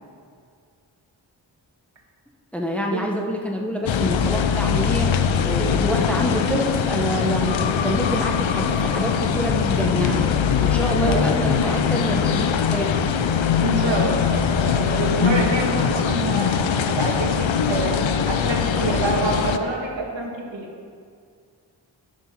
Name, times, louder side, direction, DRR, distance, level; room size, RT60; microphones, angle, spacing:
voice 1, 2.5-10.3 10.6-12.9, equal, 5° left, 1 dB, 0.9 m, -26 dB
sound 1, 3.9-19.6, left 7 dB, 85° left, 0.6 m, -22 dB
voice 2, 13.6-20.7, right 2 dB, 75° right, 0 dB, 1.5 m, -26 dB
9.3 x 5.9 x 5.8 m, 2.2 s
wide cardioid pair, 90°, 45 cm